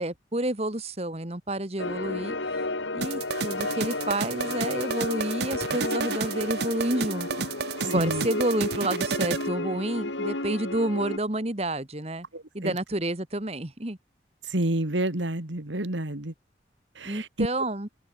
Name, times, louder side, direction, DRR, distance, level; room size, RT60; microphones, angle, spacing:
voice 1, 0.0-2.6 2.9-7.3 7.8-12.3 12.5-14.0 17.0-17.9, right 1 dB, 35° right, 1.7 m, -29 dB
sound 1, 1.8-11.2, left 2 dB, 90° left, 3.8 m, -32 dB
sound 2, 3.0-9.5, right 6 dB, 60° right, 0.6 m, -32 dB
voice 2, 7.8-8.3 12.3-12.7 14.4-16.3 16.9-17.5, right 1 dB, 90° right, 2.6 m, -29 dB
head